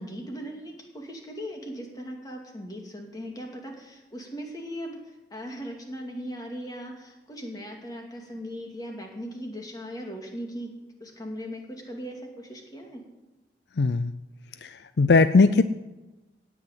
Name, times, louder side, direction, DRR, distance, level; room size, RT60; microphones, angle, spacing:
voice 1, 0.0-10.7 11.0-13.0, equal, 20° left, 1 dB, 2.4 m, -38 dB
voice 2, 13.8-14.1 14.6-15.6, left 3 dB, 70° left, 12 dB, 0.5 m, -19 dB
17.0 x 6.1 x 8.9 m, 1.1 s
head